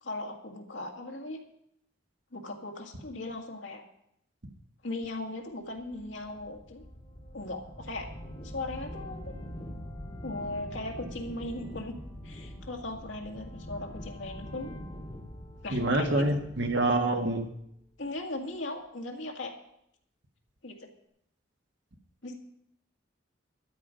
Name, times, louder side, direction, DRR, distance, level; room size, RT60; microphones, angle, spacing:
voice 1, 0.0-1.4 2.3-3.8 4.8-6.8 7.3-8.1 8.5-9.3 10.2-11.9 12.2-14.7 15.6-16.2 18.0-19.5 20.6-20.7 22.2-22.4, left 2 dB, 75° left, 2 dB, 2.0 m, -38 dB
sound 1, 5.8-17.8, equal, 30° left, 2.4 m, -44 dB
voice 2, 15.7-17.5, right 2 dB, 65° right, 4 dB, 1.5 m, -26 dB
13.0 x 9.7 x 5.2 m, 0.75 s
head